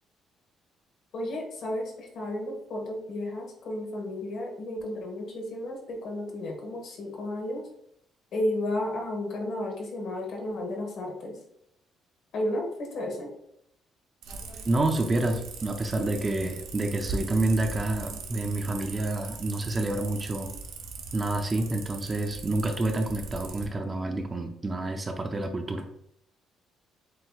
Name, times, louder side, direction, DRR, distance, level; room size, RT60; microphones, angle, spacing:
voice 1, 1.1-7.6 8.3-11.4 12.3-13.3, left 1 dB, 55° left, 1 dB, 1.4 m, -33 dB
sound 1, 14.2-23.7, right 3 dB, 85° right, 0.8 m, -40 dB
voice 2, 14.3-20.5 21.1-25.8, right 2 dB, 20° right, 5 dB, 0.5 m, -28 dB
7.5 x 2.9 x 2.3 m, 0.74 s
cardioid pair, 150°, 0 cm